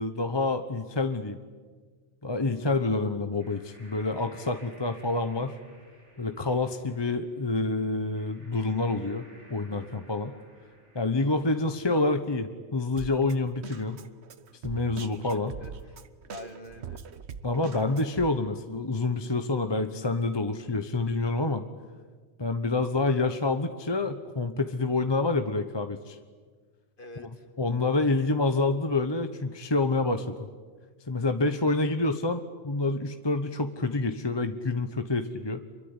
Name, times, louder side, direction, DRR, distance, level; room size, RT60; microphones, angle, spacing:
voice 1, 0.0-1.4 2.2-5.6 6.2-9.2 9.5-10.3 10.9-14.0 14.6-15.5 17.4-21.6 22.4-26.2 27.2-27.3 27.6-30.4 31.1-35.6, left 3 dB, 25° left, 8 dB, 1.0 m, -27 dB
sound 1, 3.3-12.2, right 1 dB, 85° right, 7.2 m, -57 dB
voice 2, 11.3-11.8 15.3-16.0 16.3-17.0 27.0-27.5, left 1 dB, 50° left, 7 dB, 2.4 m, -46 dB
Drum kit, 13.0-18.3, right 6 dB, 70° right, 1.3 m, -42 dB
26.0 x 22.5 x 9.8 m, 1.5 s
omnidirectional pair, 1.2 m